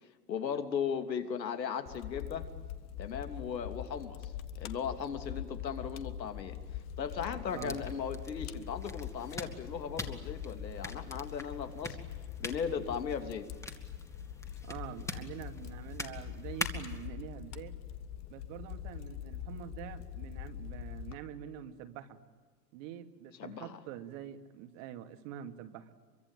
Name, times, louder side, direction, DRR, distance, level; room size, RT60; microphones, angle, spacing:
voice 1, 0.3-2.5 3.0-6.6 7.0-12.0 12.4-13.5 23.4-23.8, left 7 dB, 85° left, 7 dB, 3.1 m, -37 dB
Fire, 1.9-21.1, left 10 dB, 30° left, 1.6 m, -43 dB
sound 1, 7.5-17.1, left 2 dB, 5° left, 2.4 m, -44 dB
voice 2, 14.6-17.7 18.3-22.2 22.7-25.9, right 10 dB, 50° right, 8 dB, 2.5 m, -45 dB
24.5 x 24.0 x 9.2 m, 1.4 s
hypercardioid pair, 120°, 49 cm